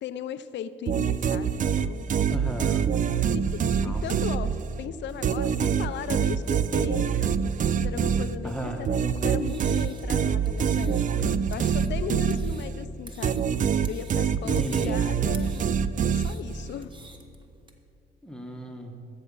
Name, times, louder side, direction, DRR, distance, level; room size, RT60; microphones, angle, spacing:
voice 1, 0.0-2.1 3.3-7.2 7.4-13.4 13.9-16.9, left 9 dB, 65° left, 12 dB, 0.5 m, -37 dB
sound 1, 0.9-4.8 5.2-12.9 13.2-16.7, right 7 dB, 40° right, 0.4 m, -25 dB
voice 2, 2.3-2.9 3.8-4.0 8.4-8.9 14.4-15.0 18.2-19.0, right 1 dB, 5° left, 2 dB, 1.0 m, -35 dB
sound 2, 7.6-12.3, left 1 dB, 85° right, 3.2 m, -50 dB
sound 3, 9.3-17.7, right 2 dB, 25° right, 1.2 m, -52 dB
13.0 x 7.0 x 5.3 m, 2.5 s
cardioid pair, 90°, 20 cm